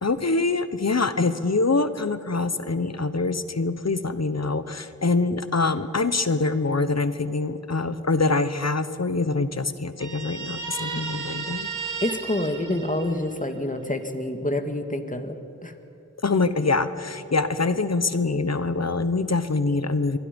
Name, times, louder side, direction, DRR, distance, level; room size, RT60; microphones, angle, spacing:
voice 1, 0.0-11.7 16.2-20.2, left 3 dB, 55° left, 12 dB, 1.2 m, -24 dB
Guitar, 10.0-13.6, right 5 dB, 75° right, 2.0 m, -34 dB
voice 2, 12.0-15.7, left 1 dB, 25° left, 6 dB, 2.1 m, -27 dB
29.5 x 23.0 x 5.4 m, 2.7 s
wide cardioid pair, 45°, 31 cm